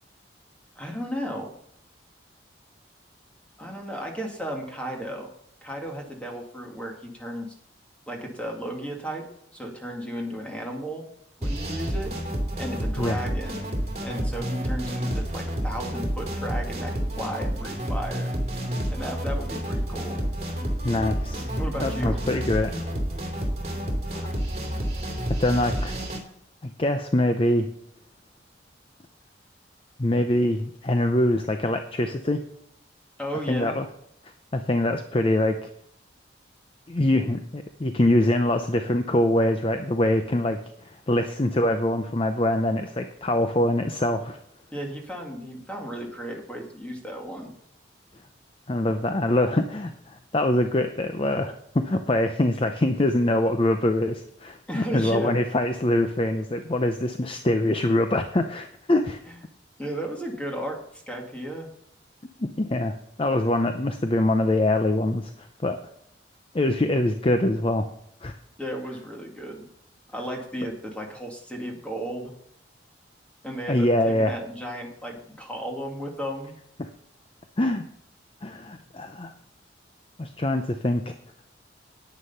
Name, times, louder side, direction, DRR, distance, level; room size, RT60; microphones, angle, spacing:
voice 1, 0.8-1.6 3.6-5.3 5.6-7.5 8.1-9.3 9.5-11.0 11.4-12.2 12.6-13.7 14.0-18.3 18.9-20.2 21.6-22.2 33.2-33.8 44.7-47.5 54.7-55.4 59.3-59.4 59.8-61.7 68.6-69.7 70.1-72.3 73.4-76.5, equal, 5° left, 1 dB, 2.1 m, -34 dB
sound 1, 11.4-26.2, equal, 35° right, 2.5 m, -29 dB
voice 2, 20.8-21.4 21.8-22.7 24.1-24.3 25.4-25.9 26.6-27.7 30.0-32.4 33.5-33.9 34.5-35.7 36.9-44.4 48.7-59.2 62.4-65.3 65.6-65.8 66.5-67.9 68.2-68.3 73.7-74.4 76.8-76.9 77.6-77.9 78.4-79.3 80.2-81.1, left 1 dB, 30° left, 7 dB, 0.6 m, -24 dB
9.9 x 9.3 x 5.6 m, 0.71 s
head